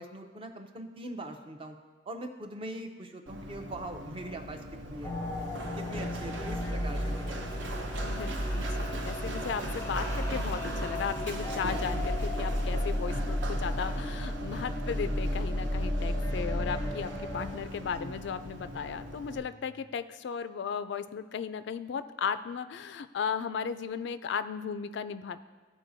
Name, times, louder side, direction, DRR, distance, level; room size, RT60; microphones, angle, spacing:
voice 1, 0.0-1.8 2.0-5.1 5.7-7.6 18.0-18.2, right 1 dB, 30° right, 5 dB, 0.6 m, -42 dB
Run, 3.3-19.4, right 1 dB, 65° right, 0.7 m, -40 dB
sound 1, 5.0-17.6, left 1 dB, 15° left, 0.5 m, -33 dB
sound 2, 5.0-19.8, equal, 85° right, 2.0 m, -51 dB
voice 2, 8.0-25.4, left 6 dB, 65° left, 12 dB, 0.3 m, -36 dB
13.5 x 4.8 x 2.7 m, 1.3 s
head